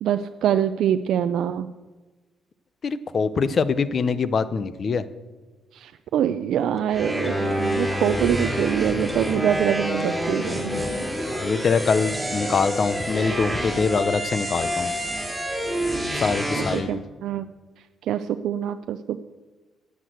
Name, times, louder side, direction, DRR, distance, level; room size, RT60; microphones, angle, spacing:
voice 1, 0.0-1.7 5.7-10.7 16.5-17.5 18.0-19.2, right 10 dB, 75° right, 9 dB, 0.4 m, -25 dB
voice 2, 2.8-5.0 11.3-14.9 16.1-17.0, left 5 dB, 45° left, 15 dB, 0.7 m, -24 dB
sound 1, 6.6-13.3, left 2 dB, 10° left, 1.1 m, -35 dB
sound 2, 6.9-16.8, equal, 5° right, 2.8 m, -28 dB
10.5 x 8.2 x 7.8 m, 1.3 s
cardioid pair, 90°, 0 cm